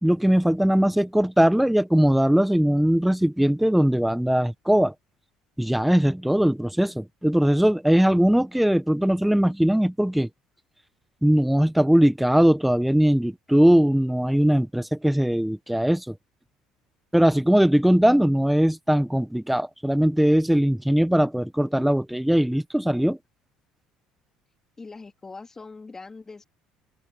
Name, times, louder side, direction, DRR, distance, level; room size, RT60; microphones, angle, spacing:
voice 1, 0.0-4.9 5.6-10.3 11.2-16.1 17.1-23.2, equal, 5° right, 1.2 m, -20 dB
voice 2, 24.8-26.4, left 3 dB, 20° left, 2.7 m, -42 dB
open air
supercardioid pair, 90°, 2 cm